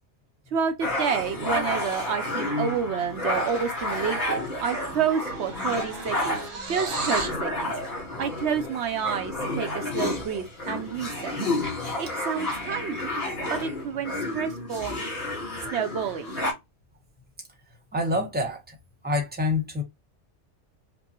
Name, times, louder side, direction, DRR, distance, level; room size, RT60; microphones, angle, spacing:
voice 1, 0.5-6.4 6.7-7.7 8.2-11.4 12.0-13.1 13.5-15.1 15.7-16.4, right 7 dB, 70° right, 0.9 m, -29 dB
sound 1, 0.8-16.5, left 1 dB, 35° left, 1.7 m, -30 dB
sound 2, 4.3-4.5 4.7-7.4, right 4 dB, 40° right, 0.4 m, -37 dB
voice 2, 17.9-18.8 19.0-19.8, left 2 dB, 10° right, 0.9 m, -27 dB
5.1 x 2.1 x 2.9 m
omnidirectional pair, 1.2 m